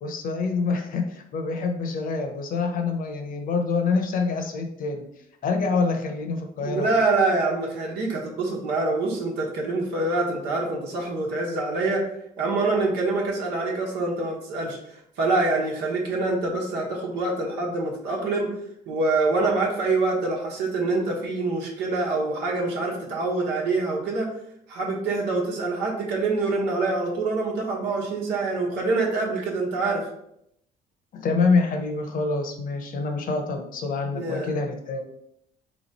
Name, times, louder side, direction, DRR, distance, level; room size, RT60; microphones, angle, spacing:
voice 1, 0.0-5.0 5.4-6.9 31.1-35.0, left 4 dB, 55° left, 4 dB, 0.9 m, -26 dB
voice 2, 6.6-12.0 12.4-18.5 18.9-24.3 24.7-30.0 34.1-34.5, right 3 dB, 85° right, -2 dB, 1.2 m, -25 dB
3.7 x 3.1 x 4.1 m, 0.77 s
cardioid pair, 110°, 17 cm